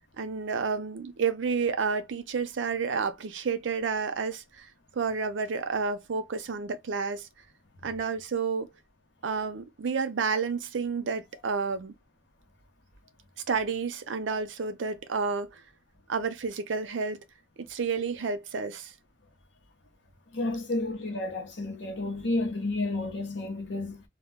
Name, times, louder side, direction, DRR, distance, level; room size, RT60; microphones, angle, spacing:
voice 1, 0.2-4.7 4.9-7.3 7.8-8.7 9.2-11.9 13.5-15.6 16.1-17.2 17.7-18.9, right 5 dB, 75° right, 0.5 m, -30 dB
voice 2, 20.3-24.0, left 2 dB, 65° left, 0.7 m, -31 dB
2.1 x 2.1 x 3.4 m
head